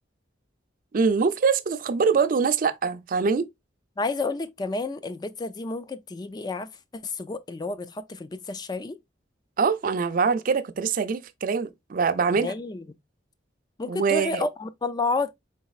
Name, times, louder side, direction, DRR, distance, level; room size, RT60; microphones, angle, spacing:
voice 1, 0.9-3.5 9.6-12.5 13.9-14.4, right 5 dB, 45° right, 0.4 m, -24 dB
voice 2, 4.0-6.7 7.0-9.0 12.3-12.9 13.8-15.3, left 3 dB, 20° left, 0.3 m, -30 dB
4.0 x 3.9 x 2.3 m
head